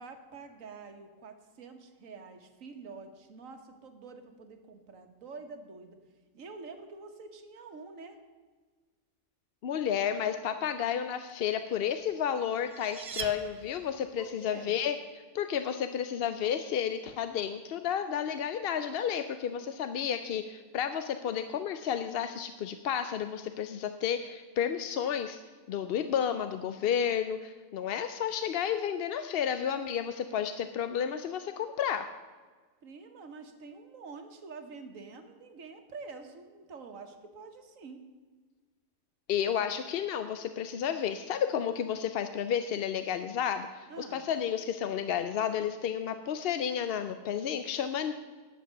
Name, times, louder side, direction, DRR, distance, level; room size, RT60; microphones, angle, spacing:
voice 1, 0.0-6.0 6.3-8.2 14.1-14.8 32.8-38.0 43.9-44.2, right 4 dB, 90° right, 6 dB, 1.6 m, -47 dB
voice 2, 9.6-14.9 15.3-25.4 25.7-32.1 39.3-48.1, left 8 dB, 60° left, 10 dB, 0.7 m, -31 dB
sound 1, 12.1-14.2, right 5 dB, 50° right, 0.4 m, -42 dB
11.0 x 7.9 x 6.5 m, 1.4 s
omnidirectional pair, 1.3 m